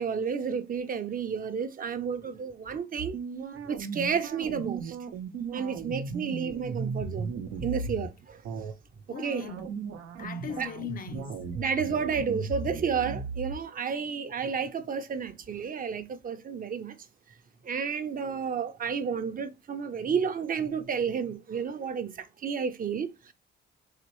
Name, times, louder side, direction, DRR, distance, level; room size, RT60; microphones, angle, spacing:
voice 1, 0.0-3.2 3.6-5.0 5.5-7.3 7.6-8.4 9.2-9.5 10.6-10.7 11.6-17.0 17.6-23.3, right 6 dB, 45° right, 0.6 m, -31 dB
sound 1, 3.0-8.1 8.4-8.7 9.2-13.6, right 5 dB, 90° right, 0.7 m, -36 dB
voice 2, 9.1-9.7 10.2-11.4, left 8 dB, 45° left, 0.6 m, -39 dB
4.1 x 3.0 x 3.0 m
cardioid pair, 90°, 20 cm